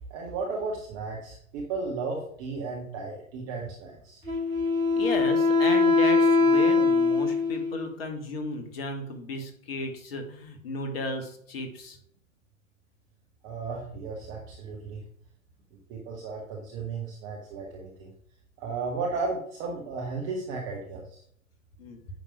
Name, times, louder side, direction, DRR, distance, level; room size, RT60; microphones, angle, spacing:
voice 1, 0.1-4.2 13.4-15.0 15.9-18.1 18.6-21.2, right 4 dB, 10° right, -1 dB, 0.4 m, -34 dB
Wind instrument woodwind instrument, 4.3-7.9, left 3 dB, 80° right, 2.7 m, -22 dB
voice 2, 5.0-12.0 21.8-22.0, left 2 dB, 45° left, 5 dB, 2.0 m, -34 dB
9.1 x 6.1 x 5.0 m, 0.65 s
figure-of-eight pair, 115°, 42 cm